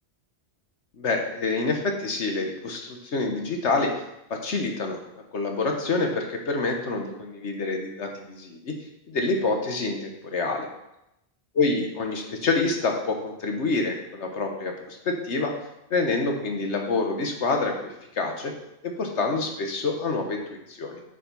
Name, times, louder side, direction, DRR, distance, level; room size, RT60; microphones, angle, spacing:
voice 1, 1.0-3.9 4.3-5.0 5.3-8.7 9.1-10.7 11.6-15.5 15.9-18.5 18.8-21.0, left 3 dB, 90° left, 3 dB, 1.5 m, -27 dB
8.6 x 5.4 x 5.3 m, 0.86 s
omnidirectional pair, 1.1 m